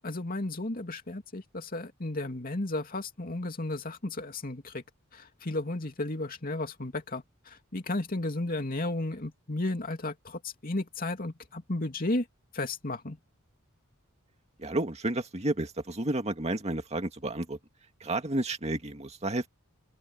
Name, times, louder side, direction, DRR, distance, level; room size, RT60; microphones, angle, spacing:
voice 1, 0.0-4.8 5.1-7.2 7.7-12.2 12.5-13.2, left 2 dB, 45° left, 2.7 m, -33 dB
voice 2, 14.6-17.6 18.0-19.5, right 1 dB, 30° right, 2.1 m, -31 dB
open air
head